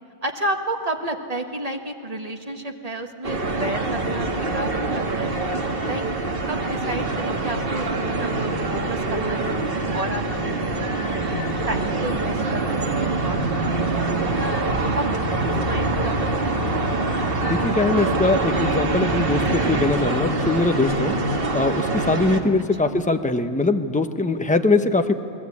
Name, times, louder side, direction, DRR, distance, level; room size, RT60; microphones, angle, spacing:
voice 1, 0.2-5.4 5.8-6.0 6.4-11.2 11.7-14.6 14.9-15.2 15.6-16.9 22.8-23.0, right 1 dB, 35° right, 3 dB, 1.8 m, -32 dB
sound 1, 3.2-22.4, right 2 dB, 55° right, 2.0 m, -24 dB
voice 2, 17.5-21.1 21.5-25.1, left 2 dB, 5° left, 7 dB, 1.0 m, -21 dB
28.5 x 21.0 x 8.6 m, 2.8 s
omnidirectional pair, 1.2 m